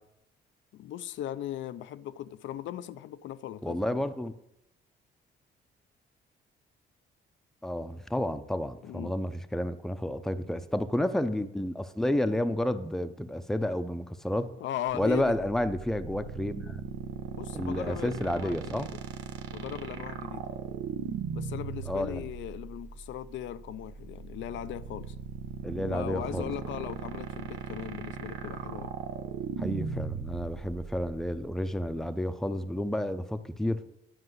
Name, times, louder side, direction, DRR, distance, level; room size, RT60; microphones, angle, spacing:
voice 1, 0.7-4.1 8.8-9.1 14.6-15.4 17.3-18.9 19.5-20.5 21.3-25.1 25.8-28.9, left 11 dB, 75° left, 0.4 m, -38 dB
voice 2, 3.6-4.3 7.6-14.5 15.0-16.8 17.5-18.9 21.9-22.3 25.6-26.5 29.6-33.8, left 1 dB, ahead, 0.6 m, -31 dB
sound 1, 14.9-32.1, right 7 dB, 75° right, 0.9 m, -38 dB
10.0 x 4.8 x 7.9 m
cardioid pair, 90°, 20 cm